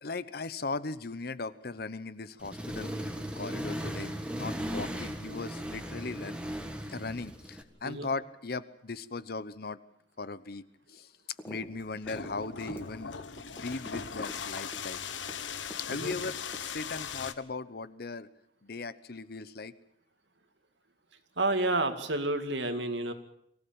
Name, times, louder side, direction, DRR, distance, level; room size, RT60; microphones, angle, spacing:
voice 1, 0.0-2.9 3.3-6.4 6.9-9.8 10.2-11.1 11.5-13.1 13.5-15.0 15.8-18.3 18.6-19.7, left 3 dB, 55° left, 16 dB, 0.9 m, -38 dB
Accelerating revving vroom, 2.4-7.6, equal, 5° right, 1.8 m, -37 dB
sound 1, 11.4-11.7 11.9-15.8 16.1-17.0, equal, 15° left, 2.8 m, -45 dB
sound 2, 11.6-17.3, left 7 dB, 90° left, 1.3 m, -39 dB
voice 2, 21.4-23.1, right 2 dB, 75° right, 7 dB, 2.3 m, -30 dB
23.5 x 16.0 x 8.8 m, 0.74 s
head